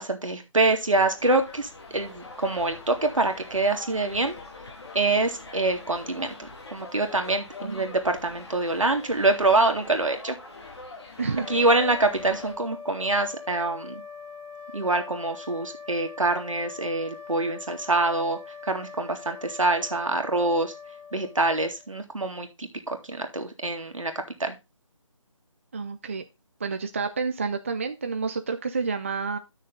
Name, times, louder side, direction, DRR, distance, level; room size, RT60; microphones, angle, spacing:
voice 1, 0.0-4.4 4.9-10.4 11.5-14.0 14.7-18.4 18.7-20.7 21.1-24.1 24.4-24.6, right 2 dB, 80° right, 5 dB, 2.1 m, -25 dB
sound 1, 0.6-12.5, left 3 dB, 55° left, 2.6 m, -44 dB
voice 2, 7.6-7.9 11.2-11.5 25.7-26.2 26.6-29.4, right 4 dB, 25° right, 8 dB, 0.4 m, -29 dB
sound 2, 11.3-22.0, left 5 dB, 5° right, 2.6 m, -43 dB
10.0 x 6.4 x 3.8 m, 0.24 s
figure-of-eight pair, 160°, 16 cm